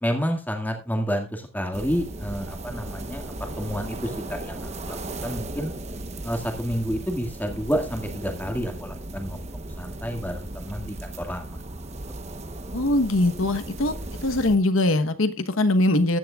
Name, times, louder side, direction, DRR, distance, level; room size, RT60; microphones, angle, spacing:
voice 1, 0.0-5.0 5.2-5.7 6.2-9.4 9.8-11.4, equal, 10° left, 1.9 m, -29 dB
sound 1, 1.7-14.6, right 2 dB, 30° right, 1.0 m, -36 dB
voice 2, 12.7-13.9 14.2-16.2, left 1 dB, 70° left, 1.2 m, -22 dB
15.5 x 10.5 x 2.4 m
head